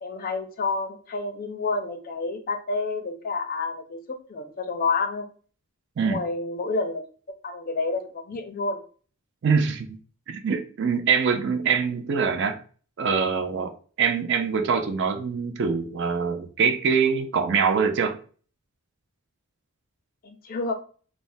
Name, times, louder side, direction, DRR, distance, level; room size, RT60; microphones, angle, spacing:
voice 1, 0.0-4.0 4.3-5.3 6.0-7.0 7.4-8.8 20.2-20.7, left 3 dB, 40° left, 0.4 m, -29 dB
voice 2, 9.4-10.0 10.3-12.6 13.0-18.2, right 6 dB, 50° right, 0.4 m, -24 dB
3.3 x 2.1 x 2.6 m
head